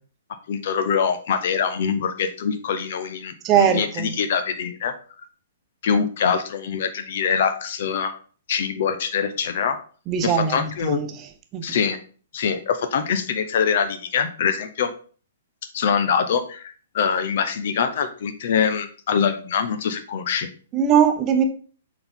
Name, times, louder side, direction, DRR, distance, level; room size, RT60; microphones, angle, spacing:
voice 1, 0.5-4.9 5.8-8.1 8.5-9.8 10.2-11.0 11.6-12.0 12.3-14.9 15.7-20.5, left 7 dB, 50° left, 0.7 m, -24 dB
voice 2, 3.4-4.1 10.1-11.1 11.5-11.7 20.7-21.4, right 8 dB, 25° right, 0.8 m, -20 dB
6.9 x 4.0 x 3.6 m
figure-of-eight pair, 115°, 0 cm